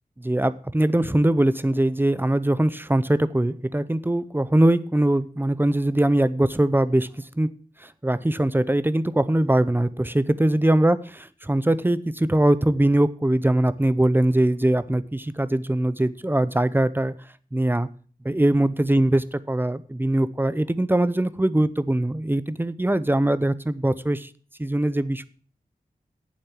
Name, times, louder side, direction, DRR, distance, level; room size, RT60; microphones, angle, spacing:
voice 1, 0.2-7.1 7.3-7.5 7.8-11.0 11.4-17.1 17.5-17.9 18.2-24.3 24.6-25.3, right 1 dB, 15° right, 16 dB, 0.6 m, -21 dB
8.7 x 7.1 x 7.4 m, 0.41 s
wide cardioid pair, 80°, 16 cm